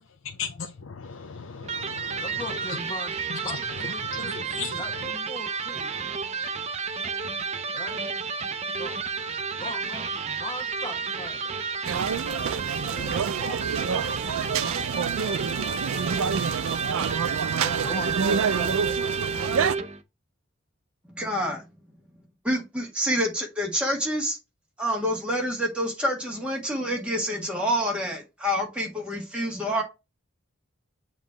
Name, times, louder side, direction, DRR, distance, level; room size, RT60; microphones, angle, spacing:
voice 1, 0.2-2.8 3.3-5.1, left 5 dB, 80° left, 0.6 m, -37 dB
Electric guitar, 1.6-20.0, right 5 dB, 30° right, 0.6 m, -31 dB
voice 2, 2.2-3.6 3.8-4.5 4.8-5.9 7.7-8.0 8.8-9.0 9.6-10.1 10.4-11.6 12.8-18.9, left 1 dB, 25° left, 1.1 m, -40 dB
sound 1, 11.8-19.7, right 6 dB, 85° right, 0.4 m, -27 dB
voice 3, 21.1-21.6 22.4-24.4 24.8-29.8, equal, 5° right, 1.7 m, -27 dB
7.3 x 3.0 x 4.9 m
head